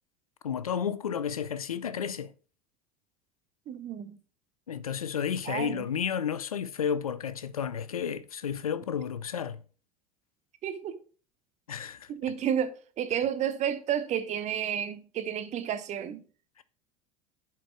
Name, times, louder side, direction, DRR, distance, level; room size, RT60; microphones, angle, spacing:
voice 1, 0.4-2.3 4.7-9.6 11.7-12.1 16.6-16.7, left 8 dB, 85° left, 0.5 m, -32 dB
voice 2, 3.7-4.2 5.5-5.9 10.6-11.0 12.1-16.2, right 9 dB, 40° right, 0.9 m, -31 dB
7.4 x 4.4 x 4.6 m
figure-of-eight pair, 75°, 18 cm